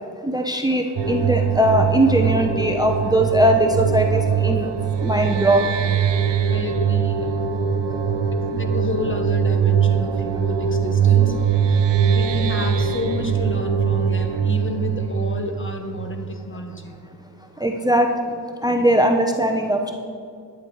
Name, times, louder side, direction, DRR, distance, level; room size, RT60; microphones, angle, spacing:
voice 1, 0.2-4.7 5.0-5.7 17.6-18.1 18.6-19.9, right 1 dB, 10° right, 4 dB, 0.8 m, -19 dB
sound 1, 1.0-16.4, right 7 dB, 80° right, 0.7 m, -21 dB
voice 2, 6.5-7.4 8.5-11.5 12.0-16.9 17.5-17.6, left 2 dB, 30° left, 5 dB, 1.1 m, -30 dB
10.5 x 9.4 x 4.7 m, 2.3 s
cardioid pair, 65°, 42 cm